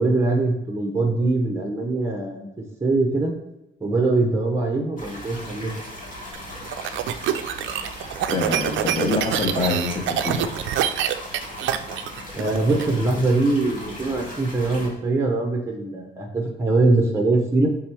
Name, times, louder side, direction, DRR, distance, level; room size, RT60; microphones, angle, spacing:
voice 1, 0.0-2.5 2.8-3.3 3.8-5.7 12.3-17.7, right 2 dB, 15° right, 2 dB, 0.7 m, -22 dB
sound 1, 5.0-14.9, left 1 dB, 40° left, 1.6 m, -38 dB
sound 2, 6.3-12.9, right 10 dB, 75° right, 0.4 m, -26 dB
voice 2, 8.3-10.5, left 3 dB, 25° left, 1 dB, 1.1 m, -25 dB
3.8 x 2.9 x 4.5 m, 0.90 s
cardioid pair, 90°, 20 cm